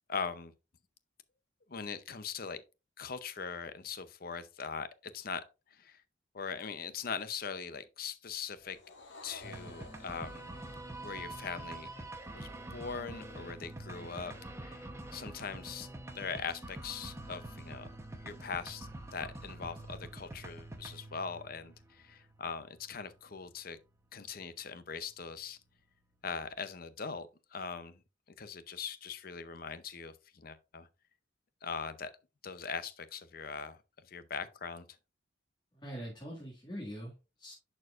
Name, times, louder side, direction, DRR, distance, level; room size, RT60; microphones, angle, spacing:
voice 1, 0.1-0.5 1.7-2.6 3.0-5.4 5.7-6.0 6.3-8.8 9.2-10.5 11.0-11.9 12.3-14.3 14.6-15.9 16.1-17.9 18.2-23.8 24.1-25.6 26.2-28.0 28.4-30.9 31.6-32.1 32.4-33.8 34.1-34.9, left 5 dB, 50° left, 0.6 m, -41 dB
sound 1, 8.5-13.1, left 3 dB, 70° left, 1.7 m, -55 dB
sound 2, 9.4-26.5, right 2 dB, 15° right, 0.9 m, -47 dB
voice 2, 35.7-37.5, equal, 25° left, 2.0 m, -43 dB
11.0 x 4.5 x 2.5 m
head